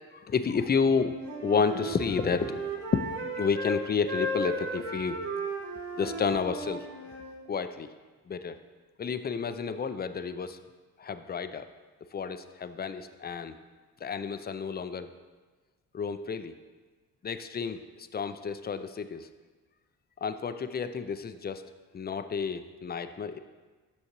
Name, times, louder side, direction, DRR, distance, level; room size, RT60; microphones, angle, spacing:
voice 1, 0.1-3.0 3.4-5.2 6.0-6.9 7.5-7.9 8.3-8.6 9.0-10.6 11.0-11.7 12.1-13.6 14.0-15.1 15.9-16.5 17.2-19.3 20.2-21.6 21.9-23.4, left 5 dB, 25° left, 10 dB, 0.5 m, -30 dB
Wind instrument woodwind instrument, 0.9-3.8 4.1-7.4, right 1 dB, 75° right, 1.2 m, -35 dB
8.7 x 6.3 x 3.0 m, 1.3 s
hypercardioid pair, 40°, 43 cm